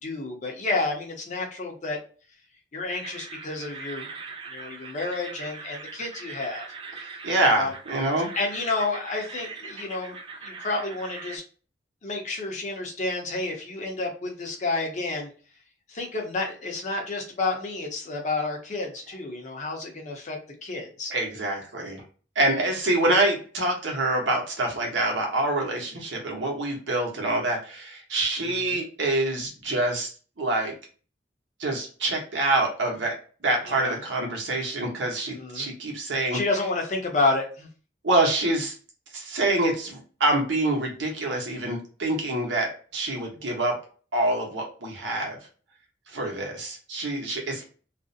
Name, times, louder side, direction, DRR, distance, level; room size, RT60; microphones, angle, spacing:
voice 1, 0.0-2.0 2.7-4.1 4.5-6.6 7.0-7.1 7.6-7.7 8.3-10.2 10.4-11.4 12.0-15.3 15.9-21.1 28.4-28.8 33.7-33.9 35.3-35.7 36.3-37.7, left 3 dB, 40° left, 1 dB, 0.6 m, -30 dB
sound 1, 2.8-11.4, right 4 dB, 30° right, 0.3 m, -41 dB
voice 2, 7.2-8.3 21.1-22.0 22.3-30.1 30.4-30.7 31.6-33.2 33.4-36.4 38.0-38.7 39.1-43.8 44.1-45.4 46.1-47.6, right 2 dB, 80° right, 0 dB, 0.9 m, -26 dB
2.4 x 2.0 x 2.5 m, 0.39 s
head